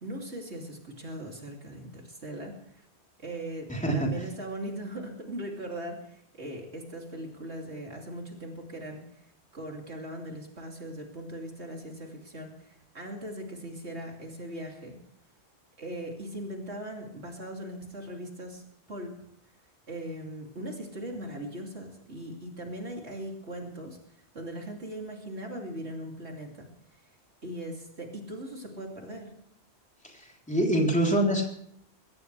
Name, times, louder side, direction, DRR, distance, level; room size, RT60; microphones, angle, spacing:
voice 1, 0.0-2.9 3.2-15.0 15.8-19.1 19.9-27.0 27.4-29.3, right 1 dB, 75° right, 1 dB, 3.2 m, -39 dB
voice 2, 3.7-4.1 30.1-31.4, right 1 dB, 5° left, -1 dB, 3.6 m, -25 dB
23.0 x 17.0 x 3.4 m, 0.68 s
omnidirectional pair, 1.1 m